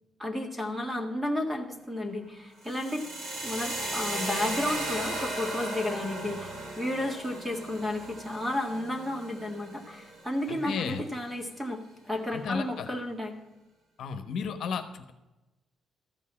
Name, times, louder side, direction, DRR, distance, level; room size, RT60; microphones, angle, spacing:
voice 1, 0.2-3.0 3.4-11.8 12.1-13.3, left 1 dB, 5° right, 3 dB, 1.7 m, -32 dB
sound 1, 2.6-10.6, right 1 dB, 85° right, 5.1 m, -36 dB
voice 2, 10.5-11.0 12.3-12.9 14.0-15.1, left 6 dB, 65° left, 8 dB, 1.1 m, -33 dB
14.0 x 5.5 x 9.6 m, 1.0 s
cardioid pair, 160°, 0 cm